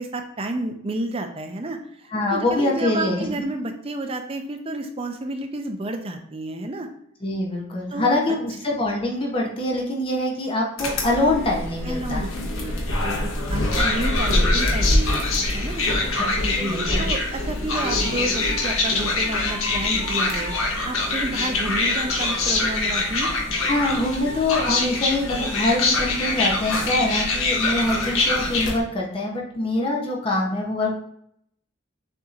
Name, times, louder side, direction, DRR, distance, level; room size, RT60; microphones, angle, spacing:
voice 1, 0.0-1.8 2.0-6.9 7.9-8.4 11.8-16.1 16.4-23.3, right 1 dB, 30° right, 5 dB, 0.5 m, -31 dB
voice 2, 2.1-3.3 7.2-12.3 16.2-16.3 16.6-17.1 23.7-30.9, left 2 dB, 25° left, -1 dB, 0.7 m, -24 dB
sound 1, 10.8-28.8, left 2 dB, 90° left, 1.0 m, -24 dB
6.7 x 2.9 x 2.4 m, 0.70 s
head